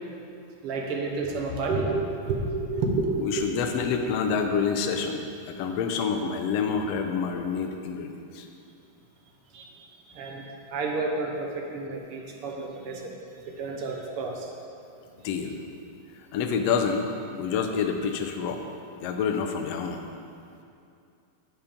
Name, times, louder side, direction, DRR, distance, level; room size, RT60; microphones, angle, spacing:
voice 1, 0.6-3.5 9.5-9.7 10.1-10.5 10.7-13.1 13.6-14.5, right 3 dB, 65° right, 0 dB, 1.5 m, -30 dB
voice 2, 3.2-8.5 15.2-15.6 16.2-17.1 17.3-18.6 19.0-20.0, left 6 dB, 75° left, 4 dB, 1.6 m, -28 dB
8.7 x 7.5 x 5.2 m, 2.5 s
omnidirectional pair, 3.5 m